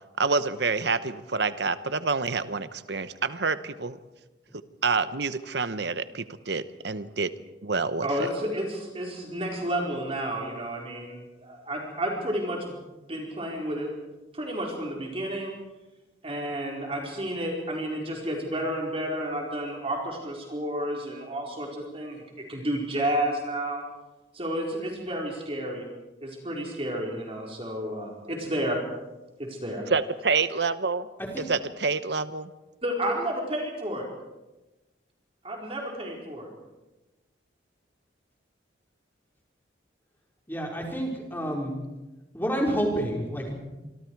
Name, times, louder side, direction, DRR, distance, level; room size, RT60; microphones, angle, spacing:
voice 1, 0.2-4.0 4.8-7.3 7.6-8.1 29.9-31.1 31.4-32.5, right 4 dB, 60° right, 12 dB, 1.0 m, -27 dB
voice 2, 8.0-12.8 13.1-13.9 14.3-15.5 16.2-23.8 24.3-25.8 26.2-28.8 29.4-29.9 32.8-34.1 35.4-36.5, right 1 dB, 30° right, -1 dB, 4.4 m, -31 dB
voice 3, 40.5-41.7 42.3-43.5, equal, 10° left, -1 dB, 4.8 m, -29 dB
26.5 x 25.0 x 4.7 m, 1.1 s
head